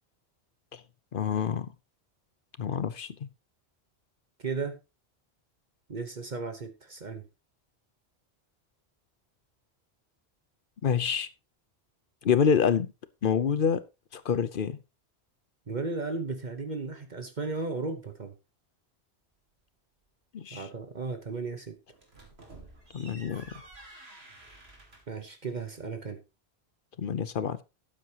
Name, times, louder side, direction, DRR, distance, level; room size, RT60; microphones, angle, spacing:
voice 1, 1.1-1.7 2.6-3.2 10.8-11.3 12.2-12.9 13.2-13.8 14.1-14.8 20.3-20.7 22.9-23.4 27.0-27.6, left 7 dB, 55° left, 0.9 m, -27 dB
voice 2, 4.4-4.8 5.9-7.2 15.7-18.3 20.5-21.8 25.1-26.2, right 4 dB, 45° right, 1.1 m, -35 dB
sound 1, 21.9-25.2, right 2 dB, 70° right, 2.7 m, -50 dB
12.5 x 8.8 x 2.9 m
omnidirectional pair, 1.1 m